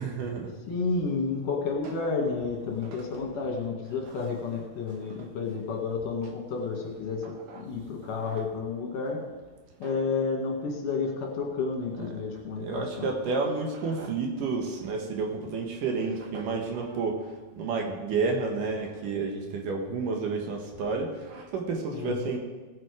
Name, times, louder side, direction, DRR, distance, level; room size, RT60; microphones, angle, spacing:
voice 1, 0.0-0.5 7.5-7.6 9.8-9.9 12.6-22.4, right 4 dB, 70° right, 2 dB, 2.9 m, -30 dB
voice 2, 0.7-7.2 7.6-9.2 9.8-13.1 21.9-22.4, left 4 dB, 70° left, 0 dB, 3.4 m, -31 dB
17.5 x 7.6 x 4.9 m, 1.3 s
omnidirectional pair, 4.0 m